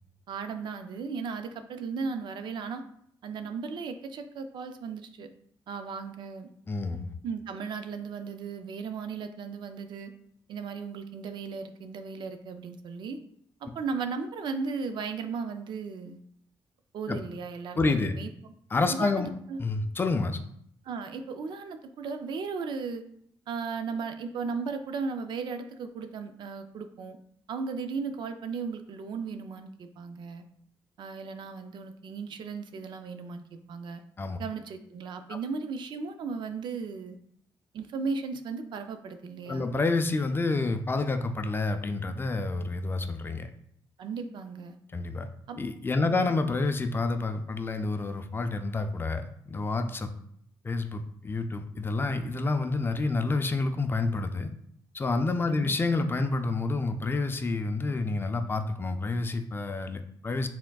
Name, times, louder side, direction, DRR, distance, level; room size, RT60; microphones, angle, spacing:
voice 1, 0.3-2.8 3.2-5.3 5.7-6.5 7.2-10.1 10.5-13.2 13.6-16.2 16.9-18.3 18.9-19.2 19.5-19.6 20.8-23.1 23.5-27.2 27.5-30.4 31.0-34.0 34.4-37.2 37.7-39.7 44.0-44.8 45.5-45.6 46.0-46.3 55.5-55.7, right 5 dB, 70° right, 8 dB, 0.4 m, -36 dB
voice 2, 6.7-7.1 17.1-17.2 17.8-18.2 18.7-19.3 19.6-20.4 34.2-34.4 35.3-35.4 39.5-43.5 44.9-45.3 45.6-50.1 50.6-54.5 54.9-60.5, left 3 dB, 25° left, 8 dB, 0.4 m, -28 dB
4.5 x 3.6 x 2.3 m, 0.68 s
cardioid pair, 85°, 8 cm